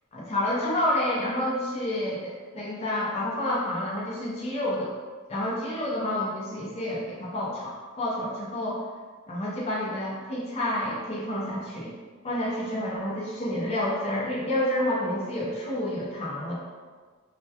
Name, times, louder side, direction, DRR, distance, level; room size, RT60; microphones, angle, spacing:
voice 1, 0.1-4.9 5.3-8.8 9.3-11.9 12.2-16.5, left 1 dB, 30° left, -5 dB, 0.5 m, -29 dB
2.2 x 2.1 x 2.7 m, 1.5 s
head